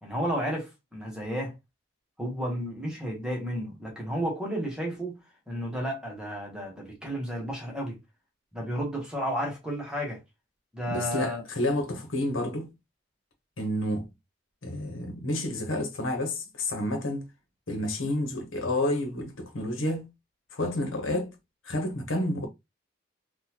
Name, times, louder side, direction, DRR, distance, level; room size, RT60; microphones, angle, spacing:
voice 1, 0.0-1.5 2.2-5.2 5.5-8.0 8.5-10.2 10.7-11.4, equal, 5° right, 1.1 m, -32 dB
voice 2, 10.9-12.7 13.6-14.1 14.6-17.3 17.7-20.1 20.5-21.3 21.6-22.5, left 1 dB, 85° left, 1.0 m, -30 dB
3.9 x 2.4 x 2.9 m
head